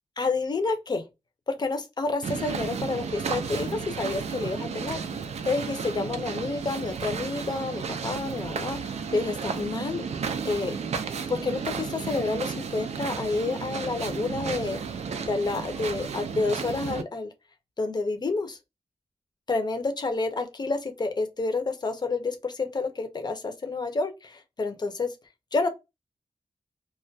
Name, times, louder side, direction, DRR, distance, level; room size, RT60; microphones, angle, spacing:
voice 1, 0.2-1.0 1.5-5.0 5.4-10.8 11.3-17.3 17.8-18.6 19.5-25.1 25.5-25.7, left 3 dB, 40° left, 0.5 m, -29 dB
sound 1, 2.2-17.0, right 6 dB, 80° right, 0.4 m, -33 dB
2.2 x 2.1 x 2.5 m
wide cardioid pair, 150°, 11 cm